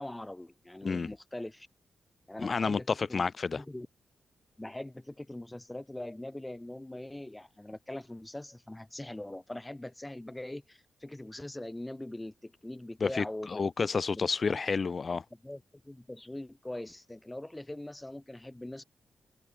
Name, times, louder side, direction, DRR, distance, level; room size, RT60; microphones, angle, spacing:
voice 1, 0.0-1.7 2.3-3.2 3.5-3.9 4.6-14.2 15.4-18.8, left 1 dB, 10° left, 2.1 m, -42 dB
voice 2, 2.4-3.6 13.0-15.2, left 4 dB, 40° left, 0.8 m, -30 dB
cardioid pair, 105°, 0 cm